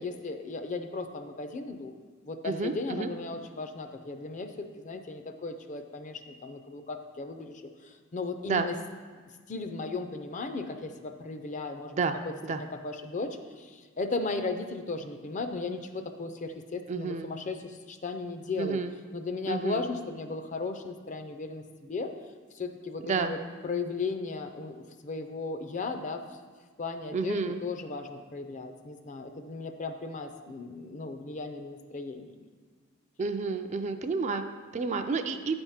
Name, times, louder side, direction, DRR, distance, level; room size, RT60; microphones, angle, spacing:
voice 1, 0.0-1.9 2.2-8.7 9.5-12.0 12.6-18.8 19.1-22.1 22.5-23.4 23.6-26.4 26.8-32.4, left 3 dB, 35° left, 7 dB, 0.5 m, -36 dB
voice 2, 2.4-3.1 8.5-8.7 11.9-12.2 12.4-12.6 16.9-17.3 18.6-18.9 19.5-19.9 23.1-23.3 27.1-27.6 33.2-35.6, right 4 dB, 35° right, 7 dB, 0.3 m, -30 dB
8.9 x 3.5 x 5.6 m, 1.5 s
head